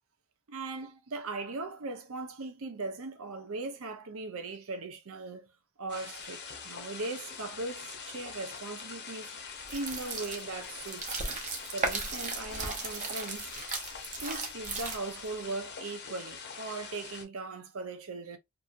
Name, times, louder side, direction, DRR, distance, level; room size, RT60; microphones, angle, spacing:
voice 1, 0.5-5.5 5.8-11.4 11.7-13.5 14.2-18.4, right 3 dB, 70° right, 0.6 m, -39 dB
sound 1, 5.9-17.2, left 5 dB, 50° left, 0.7 m, -44 dB
sound 2, 9.6-15.3, right 3 dB, 35° right, 0.7 m, -36 dB
2.8 x 2.6 x 2.4 m
head